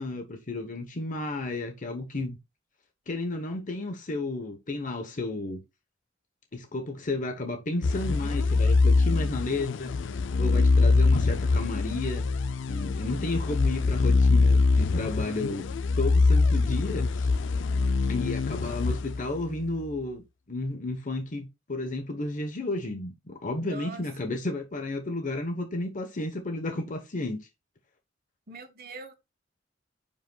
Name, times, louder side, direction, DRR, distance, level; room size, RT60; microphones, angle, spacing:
voice 1, 0.0-2.4 3.1-5.6 6.5-9.9 10.4-12.2 12.7-15.7 16.0-17.3 18.1-27.4, left 2 dB, 45° left, 1.0 m, -32 dB
sound 1, 7.8-19.7, left 3 dB, 70° left, 0.4 m, -24 dB
voice 2, 23.6-24.1 28.5-29.1, right 3 dB, 50° right, 1.2 m, -42 dB
10.0 x 5.3 x 2.3 m
head